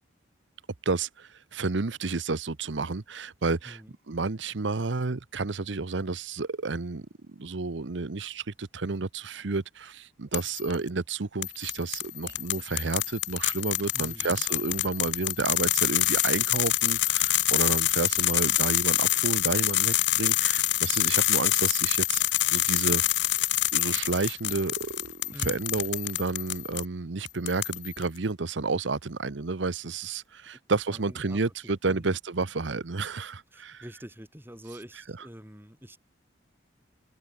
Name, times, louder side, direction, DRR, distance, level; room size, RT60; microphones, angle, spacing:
voice 1, 0.8-3.8 4.1-22.2 22.5-23.0 23.7-33.8, right 3 dB, 75° right, 0.9 m, -31 dB
voice 2, 3.6-4.0 13.9-14.4 25.3-25.6 30.9-32.2 33.5-36.0, equal, 10° right, 5.8 m, -46 dB
sound 1, 10.3-10.7 11.4-26.8 27.3-28.0, left 14 dB, 65° left, 1.1 m, -26 dB
head